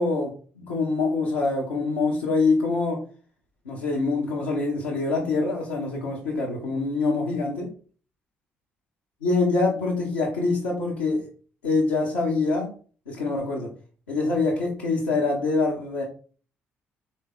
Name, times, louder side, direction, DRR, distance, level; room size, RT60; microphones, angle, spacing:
voice 1, 0.0-3.0 3.6-7.7 9.2-11.3 11.6-12.7 13.1-13.7 14.1-16.0, left 3 dB, 80° left, -5 dB, 0.7 m, -25 dB
3.5 x 2.6 x 3.6 m, 0.41 s
figure-of-eight pair, 45°, 6 cm